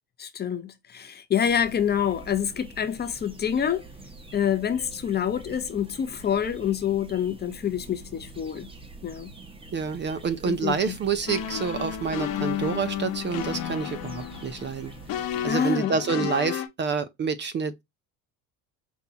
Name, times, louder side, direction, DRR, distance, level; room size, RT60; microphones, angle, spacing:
voice 1, 0.2-3.8 4.3-8.7 9.0-9.3 10.4-10.9 15.5-16.3, left 8 dB, 30° left, 0.6 m, -27 dB
sound 1, 1.4-15.5, right 3 dB, 15° right, 0.9 m, -46 dB
voice 2, 9.7-14.9 15.4-17.8, right 5 dB, 30° right, 0.4 m, -28 dB
sound 2, 11.3-16.7, left 10 dB, 70° left, 1.0 m, -32 dB
5.3 x 2.2 x 2.7 m
cardioid pair, 115°, 37 cm